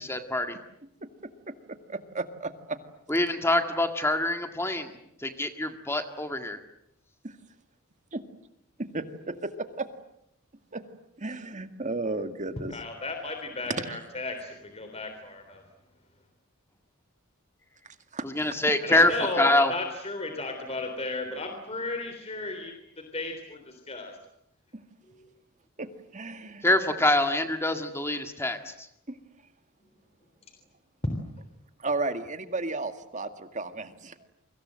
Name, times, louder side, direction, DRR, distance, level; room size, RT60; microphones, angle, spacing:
voice 1, 0.1-0.6 3.1-4.9 5.2-6.6 18.2-19.1 19.4-19.7 26.6-28.7, left 1 dB, 10° left, 7 dB, 1.9 m, -25 dB
voice 2, 1.9-2.8 7.2-7.4 8.1-8.2 8.8-9.9 10.7-10.8 11.2-12.7 13.8-14.0 18.1-18.6 25.8-26.7 29.1-29.2 31.8-34.3, right 3 dB, 35° right, 8 dB, 2.0 m, -34 dB
voice 3, 12.7-15.6 18.8-22.7 23.1-24.2 25.2-25.3, left 2 dB, 30° left, 5 dB, 3.5 m, -35 dB
29.5 x 25.0 x 7.7 m, 0.76 s
head